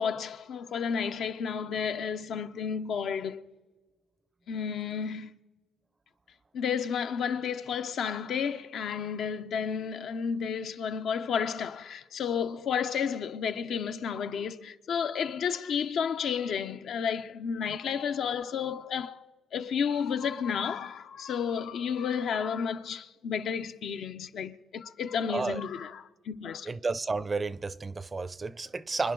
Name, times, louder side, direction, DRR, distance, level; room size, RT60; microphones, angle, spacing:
voice 1, 0.0-3.4 4.5-5.3 6.5-19.3 19.5-26.7, left 7 dB, 70° left, 0.7 m, -32 dB
voice 2, 25.3-25.6 26.6-29.1, right 4 dB, 30° right, 0.5 m, -32 dB
25.5 x 10.5 x 3.8 m
cardioid pair, 90°, 0 cm